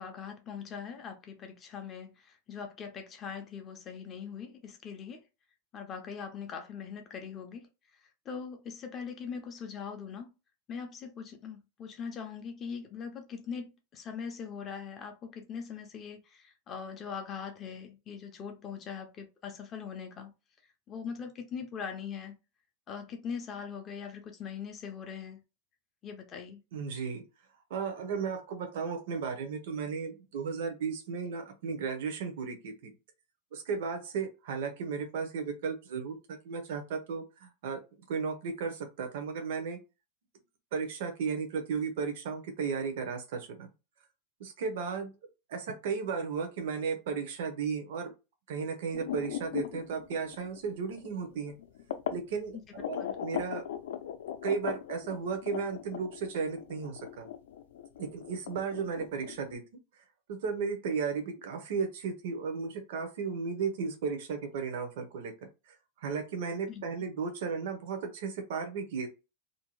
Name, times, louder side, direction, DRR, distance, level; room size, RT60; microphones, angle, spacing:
voice 1, 0.0-5.2 5.7-10.3 10.7-20.3 20.9-22.4 22.9-25.4 26.0-26.6 53.0-53.2 66.7-66.8, left 6 dB, 20° left, 0.4 m, -41 dB
voice 2, 26.7-27.2 27.7-32.9 33.5-36.2 36.4-37.8 38.1-39.8 40.7-43.7 44.4-45.1 45.5-48.1 48.5-51.6 52.1-53.6 54.4-57.3 58.0-59.6 60.0-65.3 65.7-69.1, right 5 dB, 65° right, 0.6 m, -35 dB
sound 1, 48.9-52.2 52.8-59.6, left 10 dB, 85° left, 0.4 m, -39 dB
2.5 x 2.1 x 3.0 m
supercardioid pair, 175°, 0 cm